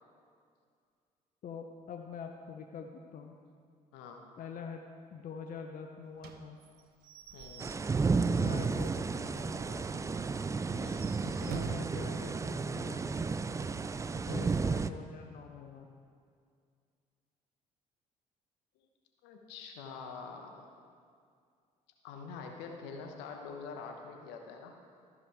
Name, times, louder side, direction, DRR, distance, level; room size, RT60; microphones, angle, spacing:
voice 1, 1.4-3.4 4.4-6.6 8.0-10.1 11.2-13.3 14.1-15.9, left 6 dB, 50° left, 4 dB, 0.7 m, -45 dB
voice 2, 3.9-4.2 7.3-7.7 10.7-11.1 14.3-14.6 19.2-20.7 22.0-24.7, left 5 dB, 75° left, 3 dB, 1.0 m, -45 dB
Slam / Squeak / Wood, 6.2-9.4 9.7-9.8 10.1-10.2 10.7-12.1, right 7 dB, 60° right, 0.6 m, -47 dB
sound 1, 7.6-14.9, right 4 dB, 15° right, 0.3 m, -32 dB
13.5 x 5.1 x 4.7 m, 2.2 s
hypercardioid pair, 55°, 18 cm